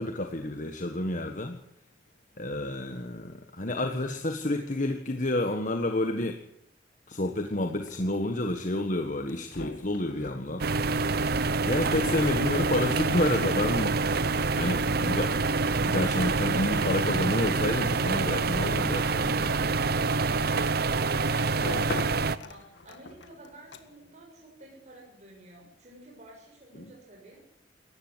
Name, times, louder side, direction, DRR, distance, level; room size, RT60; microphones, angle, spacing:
voice 1, 0.0-1.6 2.4-6.4 7.1-10.6 11.6-14.0 14.6-15.3 15.8-20.0 26.8-26.9, left 1 dB, 45° left, 5 dB, 1.6 m, -29 dB
sound 1, 7.7-24.2, left 3 dB, 90° left, 1.8 m, -46 dB
sound 2, 10.6-22.4, right 3 dB, 60° right, 0.9 m, -26 dB
voice 2, 20.9-27.4, right 1 dB, 40° right, -1 dB, 7.0 m, -51 dB
18.5 x 15.0 x 9.8 m, 0.70 s
head